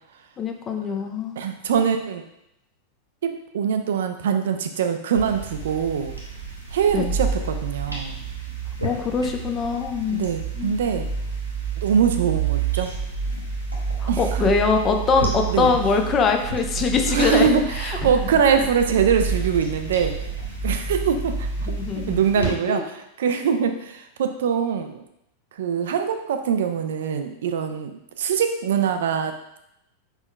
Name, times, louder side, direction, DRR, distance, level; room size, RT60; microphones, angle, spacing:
voice 1, 0.4-1.4 6.9-7.1 8.8-10.3 10.6-10.7 14.0-17.5 17.7-18.0 21.7-22.8, left 5 dB, 25° left, 4 dB, 0.5 m, -23 dB
voice 2, 1.4-2.2 3.2-6.1 6.7-8.2 10.1-11.1 11.8-12.9 14.1-14.5 15.5-15.7 17.1-20.1 20.6-21.5 22.0-25.0 25.6-29.6, right 7 dB, 60° right, 7 dB, 0.4 m, -23 dB
sound 1, 5.1-22.5, right 6 dB, 85° right, 0.9 m, -29 dB
4.5 x 4.4 x 2.2 m, 0.81 s
figure-of-eight pair, 90°, 0 cm